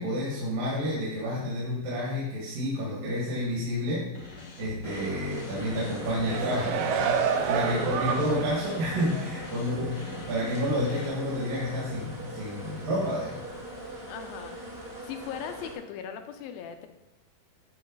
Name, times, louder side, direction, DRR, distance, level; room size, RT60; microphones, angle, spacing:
voice 1, 0.0-13.4 13.8-14.0, equal, 65° right, -6 dB, 3.4 m, -30 dB
sound 1, 4.1-11.1, left 4 dB, 65° left, 1.0 m, -43 dB
sound 2, 4.8-15.7, right 1 dB, 25° right, 0.7 m, -41 dB
sound 3, 6.0-8.7 9.1-9.3, right 7 dB, 85° right, 2.7 m, -28 dB
voice 2, 14.1-14.8 15.0-16.9, left 8 dB, 80° left, 7 dB, 2.3 m, -39 dB
11.0 x 3.9 x 5.4 m, 0.99 s
omnidirectional pair, 4.5 m